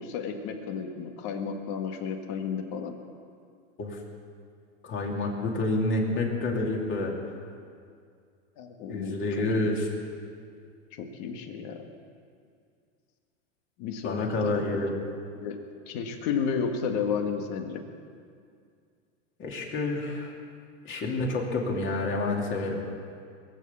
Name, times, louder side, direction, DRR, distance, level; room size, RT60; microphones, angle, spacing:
voice 1, 0.0-2.9 8.6-9.2 10.9-11.8 13.8-15.0 15.4-15.6 15.9-17.8, left 6 dB, 55° left, 5 dB, 1.9 m, -32 dB
voice 2, 4.8-7.1 8.9-9.9 14.0-14.9 19.4-20.3 20.8-22.8, left 2 dB, 30° left, 0 dB, 2.8 m, -28 dB
22.0 x 8.0 x 7.2 m, 2.2 s
supercardioid pair, 135°, 38 cm